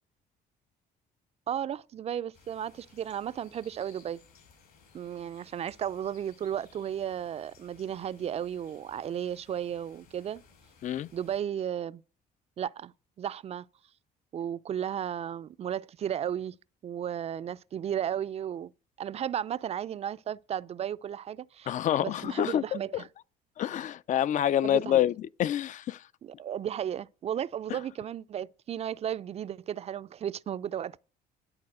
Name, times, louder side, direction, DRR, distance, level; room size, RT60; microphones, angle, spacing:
voice 1, 1.5-4.2 4.9-10.4 11.1-12.0 12.6-12.9 13.2-13.7 14.3-16.6 16.8-18.7 19.0-21.7 22.0-23.1 24.6-25.0 26.2-31.0, right 9 dB, 40° right, 0.4 m, -34 dB
sound 1, 2.3-11.4, left 5 dB, 65° left, 4.0 m, -60 dB
voice 2, 21.7-22.6 22.9-23.0 23.6-26.0, left 11 dB, 50° left, 0.4 m, -27 dB
11.0 x 4.1 x 7.6 m
cardioid pair, 110°, 17 cm